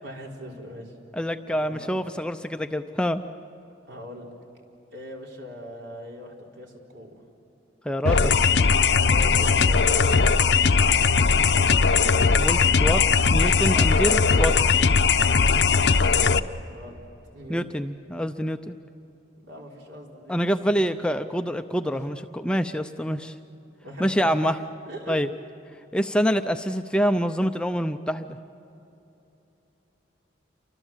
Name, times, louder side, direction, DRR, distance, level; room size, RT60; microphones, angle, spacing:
voice 1, 0.0-1.0 1.6-1.9 3.9-4.3 4.9-7.1 8.3-8.5 8.9-11.4 16.7-17.0 17.3-17.6 19.4-20.7 21.9-22.1 23.8-25.2, equal, 70° right, -1 dB, 4.3 m, -41 dB
voice 2, 1.1-3.3 7.8-8.3 12.3-13.0 13.3-14.5 17.5-18.8 20.3-23.3 24.0-24.6 25.1-25.3 25.9-28.4, equal, 5° left, 8 dB, 0.5 m, -26 dB
sound 1, 8.0-16.4, left 5 dB, 60° left, 0.7 m, -19 dB
29.5 x 24.5 x 7.4 m, 3.0 s
head